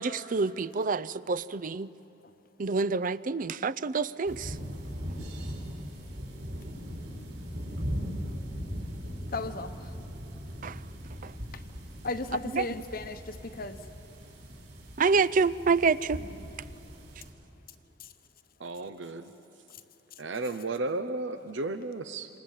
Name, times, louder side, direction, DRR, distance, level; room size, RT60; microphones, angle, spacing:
voice 1, 0.0-1.9 2.6-4.6 10.6-10.8 11.2-11.3 12.5-12.6 15.0-16.2, right 4 dB, 45° right, 15 dB, 0.5 m, -27 dB
sound 1, 4.2-17.3, equal, 65° right, 5.5 m, -39 dB
voice 2, 9.3-9.9 11.5-11.6 12.0-13.8 18.0-18.1, left 3 dB, 50° left, 10 dB, 1.1 m, -35 dB
voice 3, 18.6-19.3 20.2-22.3, right 2 dB, 85° right, 10 dB, 0.9 m, -34 dB
27.5 x 27.0 x 7.4 m, 2.9 s
head